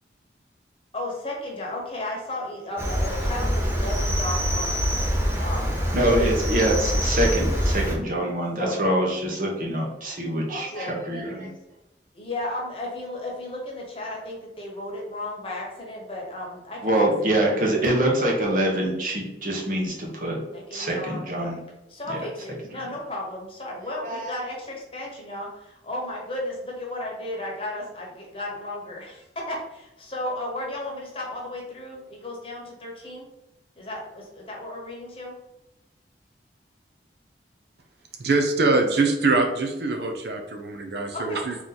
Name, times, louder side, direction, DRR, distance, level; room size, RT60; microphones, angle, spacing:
voice 1, 0.9-6.3 8.6-8.8 10.6-11.0 12.1-16.8 17.5-17.6 20.5-21.5 21.9-33.3 33.8-35.4 41.1-41.4, left 1 dB, 30° left, -2 dB, 1.1 m, -34 dB
Cricket, 2.8-7.9, equal, 15° right, 0.7 m, -25 dB
voice 2, 5.9-11.5 16.8-20.4 20.7-21.6 22.1-22.3 24.0-24.3, right 1 dB, 50° right, -1 dB, 1.0 m, -25 dB
voice 3, 38.2-41.6, right 3 dB, 65° right, 4 dB, 0.6 m, -23 dB
4.0 x 3.0 x 3.9 m, 0.95 s
head